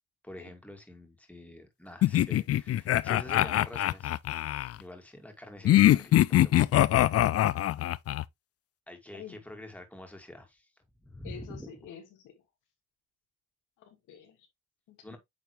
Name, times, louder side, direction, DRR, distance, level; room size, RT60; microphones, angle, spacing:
voice 1, 0.2-4.2 4.8-7.3 8.9-10.7 11.0-11.7 15.0-15.2, left 1 dB, 5° left, 2.2 m, -46 dB
sound 1, 2.0-4.7 5.6-8.2, left 13 dB, 55° left, 0.4 m, -23 dB
voice 2, 11.2-12.3 13.8-14.4 14.9-15.2, left 8 dB, 90° left, 2.1 m, -48 dB
9.0 x 3.4 x 3.2 m
cardioid pair, 90°, 30 cm